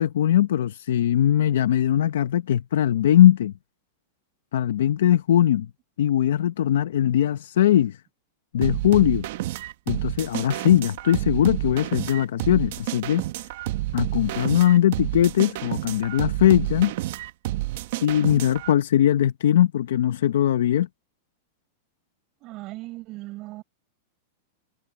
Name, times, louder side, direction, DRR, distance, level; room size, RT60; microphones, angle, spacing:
voice 1, 0.0-3.5 4.5-5.7 6.0-8.0 8.5-9.3 9.9-13.2 13.9-16.9 18.0-20.9, left 11 dB, 85° left, 0.7 m, -20 dB
sound 1, 8.6-18.7, right 16 dB, 55° right, 0.9 m, -30 dB
voice 2, 22.4-23.6, right 19 dB, 35° right, 7.2 m, -38 dB
supercardioid pair, 165°, 0 cm